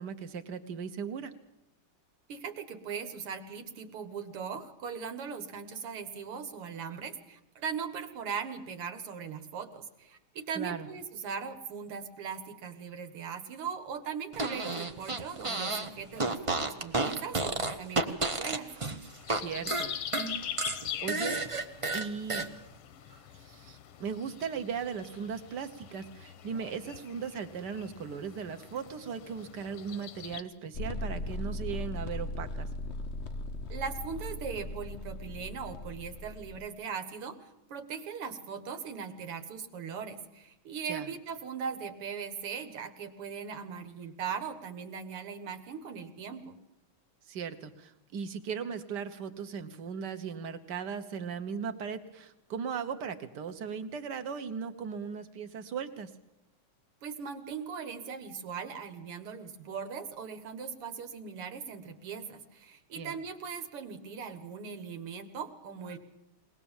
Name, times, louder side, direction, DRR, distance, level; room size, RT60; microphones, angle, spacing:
voice 1, 0.0-1.3 10.5-10.9 19.3-19.9 21.0-21.4 21.9-22.5 23.1-32.7 40.9-41.1 47.3-56.1 62.9-63.2, right 6 dB, 55° right, 8 dB, 1.7 m, -38 dB
voice 2, 2.3-18.7 33.7-37.4 37.7-46.6 57.0-66.0, right 6 dB, 85° right, 7 dB, 2.4 m, -39 dB
Fart, 14.3-15.9 16.2-19.4 19.7-22.5, right 2 dB, 40° right, 0.4 m, -31 dB
sound 1, 19.1-30.4, left 10 dB, 80° left, 1.8 m, -43 dB
sound 2, 30.7-36.7, left 2 dB, 60° left, 0.6 m, -38 dB
21.5 x 19.5 x 7.2 m, 0.89 s
omnidirectional pair, 2.4 m